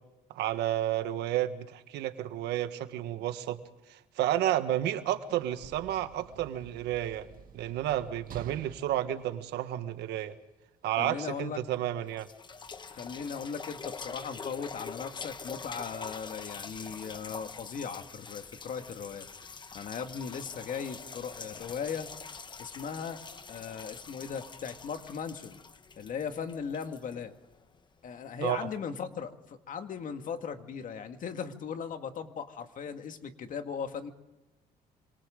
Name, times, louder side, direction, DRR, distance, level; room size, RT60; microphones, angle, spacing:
voice 1, 0.3-3.6 3.9-7.3 7.5-10.4 10.8-12.3 28.4-28.7, right 12 dB, 80° right, 9 dB, 1.6 m, -31 dB
Sliding door / Slam, 4.9-10.2 11.1-11.3, right 8 dB, 55° right, 1.9 m, -49 dB
voice 2, 11.0-11.6 12.9-19.3 19.7-22.1 22.6-23.2 23.5-25.6 26.0-27.4 28.0-34.1, left 6 dB, 50° left, 7 dB, 2.0 m, -38 dB
sound 1, 12.1-27.8 28.5-28.6, left 5 dB, 25° left, 1.1 m, -45 dB
27.5 x 26.0 x 3.9 m, 0.98 s
cardioid pair, 110°, 17 cm